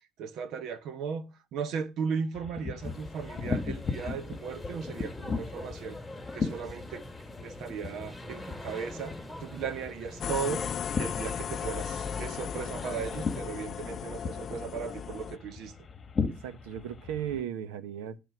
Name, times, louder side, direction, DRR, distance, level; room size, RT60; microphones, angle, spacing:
voice 1, 0.2-6.0 6.3-7.0 7.4-10.7 10.9-15.7, right 6 dB, 60° right, 1.1 m, -36 dB
sound 1, 2.3-17.4, left 5 dB, 30° left, 1.5 m, -38 dB
sound 2, 2.8-13.4, left 1 dB, ahead, 3.7 m, -44 dB
sound 3, 10.2-15.4, left 8 dB, 45° left, 0.5 m, -36 dB
voice 2, 16.4-18.2, right 9 dB, 85° right, 1.1 m, -36 dB
12.5 x 4.1 x 6.1 m
supercardioid pair, 100°, 0 cm